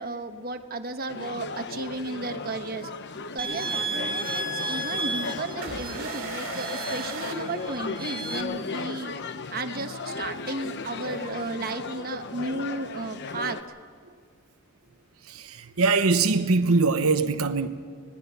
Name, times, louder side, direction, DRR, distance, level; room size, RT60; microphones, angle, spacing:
voice 1, 0.0-2.9 3.3-9.1 9.5-13.6, right 2 dB, 45° right, 1.1 m, -34 dB
sound 1, 1.1-13.6, left 4 dB, 55° left, 0.9 m, -36 dB
sound 2, 3.4-8.4, right 3 dB, 25° right, 1.7 m, -33 dB
sound 3, 5.6-8.4, right 4 dB, 65° right, 2.0 m, -37 dB
voice 2, 15.3-17.7, right 4 dB, 80° right, 0.9 m, -22 dB
25.5 x 19.5 x 5.7 m
head